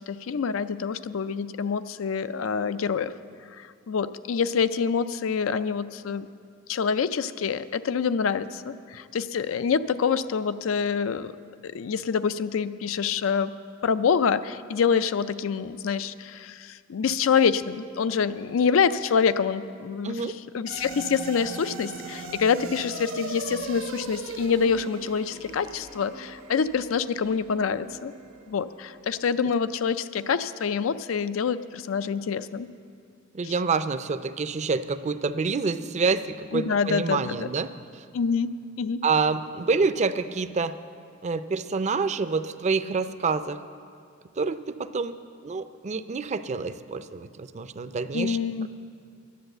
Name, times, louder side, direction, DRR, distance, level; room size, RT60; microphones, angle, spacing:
voice 1, 0.1-3.1 3.6-6.3 6.7-11.3 11.6-13.5 13.8-28.1 28.5-32.7 33.4-33.5 36.5-37.5 38.1-38.5 38.8-39.0 48.1-48.7, left 6 dB, 85° left, 13 dB, 0.4 m, -26 dB
sound 1, 20.7-29.2, right 3 dB, 85° right, 1.2 m, -39 dB
voice 2, 33.3-38.0 39.0-40.7 41.2-43.6 44.4-45.2 45.4-48.4, right 4 dB, 35° right, 12 dB, 0.4 m, -27 dB
10.5 x 10.5 x 7.8 m, 2.3 s
head